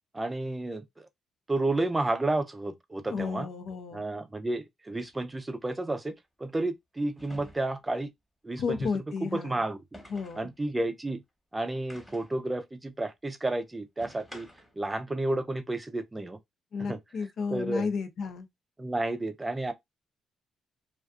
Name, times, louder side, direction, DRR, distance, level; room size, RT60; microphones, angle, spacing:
voice 1, 0.1-1.1 1.5-3.5 3.9-6.1 6.4-8.1 8.4-8.9 9.2-9.8 10.3-11.2 11.5-14.5 14.8-16.4 16.8-17.0 17.5-17.9 18.8-19.7, right 2 dB, 15° right, 0.5 m, -31 dB
voice 2, 3.1-4.0 8.6-9.6 10.1-10.5 16.7-18.5, left 5 dB, 60° left, 0.6 m, -33 dB
sound 1, 5.0-5.1 7.2-7.9 9.9-10.5 11.9-12.4 14.0-14.8, equal, 5° left, 1.1 m, -50 dB
2.5 x 2.4 x 2.3 m
cardioid pair, 90°, 0 cm